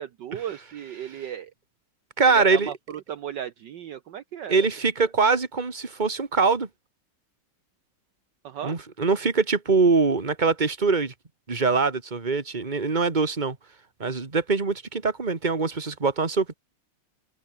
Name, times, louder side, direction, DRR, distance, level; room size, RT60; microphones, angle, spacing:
voice 1, 0.0-1.5 2.2-4.7 5.0-5.1 8.4-8.8, right 10 dB, 65° right, 1.5 m, -35 dB
voice 2, 2.2-2.7 4.5-6.7 8.6-11.1 11.5-13.6 14.0-16.5, right 4 dB, 20° right, 2.1 m, -23 dB
open air
omnidirectional pair, 2.3 m